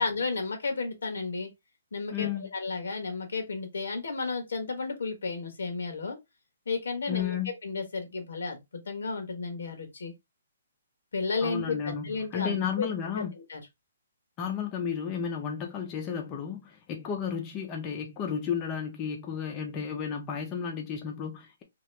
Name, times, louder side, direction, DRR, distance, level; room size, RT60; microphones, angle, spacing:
voice 1, 0.0-1.5 1.9-6.2 6.7-7.4 7.6-10.1 11.1-12.9 13.1-13.6, left 4 dB, 85° left, 1.1 m, -33 dB
voice 2, 2.1-2.5 7.1-7.5 11.4-13.3 14.4-21.6, left 7 dB, 20° left, 0.5 m, -33 dB
2.8 x 2.4 x 3.2 m
hypercardioid pair, 170°, 0 cm